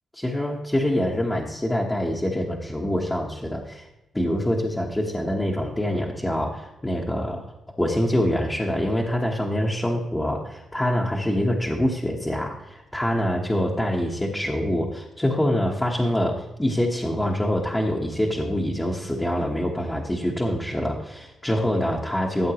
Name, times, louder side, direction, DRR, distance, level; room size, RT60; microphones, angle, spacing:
voice 1, 0.1-3.9 4.1-7.4 7.8-22.5, equal, 10° left, -3 dB, 1.3 m, -25 dB
14.5 x 7.5 x 3.0 m, 0.95 s
cardioid pair, 110°, 0 cm